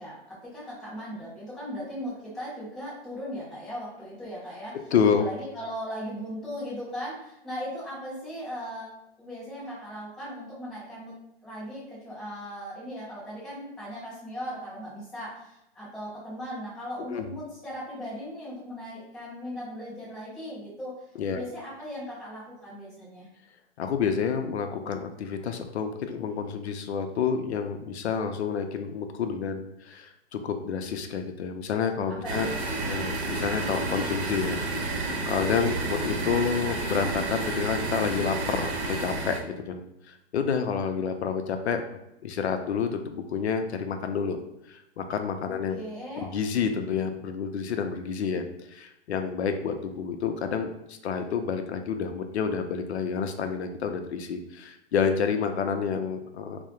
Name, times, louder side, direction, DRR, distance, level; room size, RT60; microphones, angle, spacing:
voice 1, 0.0-4.8 5.2-8.9 9.2-11.1 11.4-21.0 21.3-23.3 32.1-32.6 45.4-46.3, equal, ahead, -13 dB, 0.5 m, -38 dB
voice 2, 4.7-5.3 17.1-17.3 21.2-21.4 23.8-32.5 32.8-41.8 42.2-44.4 44.7-45.8 46.1-48.4 48.7-56.6, left 6 dB, 80° left, 6 dB, 0.5 m, -29 dB
sound 1, 32.2-39.4, right 2 dB, 80° right, 0.7 m, -30 dB
2.3 x 2.0 x 2.8 m, 0.84 s
hypercardioid pair, 155°, 32 cm